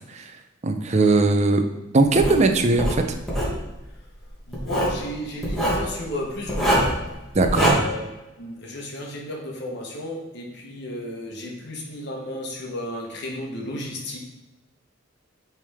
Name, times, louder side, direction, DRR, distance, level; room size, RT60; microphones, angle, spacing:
voice 1, 0.6-1.6 1.9-3.0 7.4-7.8, right 3 dB, 35° right, 6 dB, 0.5 m, -19 dB
Writing, 2.2-2.4 2.8-3.6 4.5-5.0 5.4-5.8 6.5-7.0 7.4-7.7, equal, ahead, 1.3 m, -23 dB
voice 2, 4.5-7.1 7.5-8.1 8.4-14.2, left 1 dB, 60° left, -1 dB, 1.1 m, -33 dB
8.5 x 3.4 x 3.5 m, 1.0 s
head